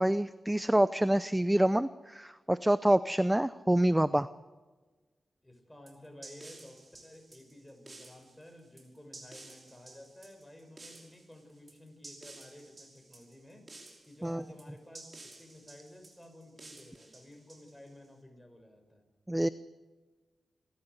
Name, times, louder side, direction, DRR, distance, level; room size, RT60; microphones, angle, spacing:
voice 1, 0.0-4.3 14.2-14.4 19.3-19.5, right 1 dB, 10° right, 15 dB, 0.6 m, -27 dB
voice 2, 5.4-13.7 14.0-19.0, left 1 dB, 5° left, 4 dB, 6.2 m, -53 dB
sound 1, 5.9-18.1, right 2 dB, 40° right, 5.8 m, -53 dB
27.0 x 13.5 x 8.1 m, 1.3 s
cardioid pair, 65°, 0 cm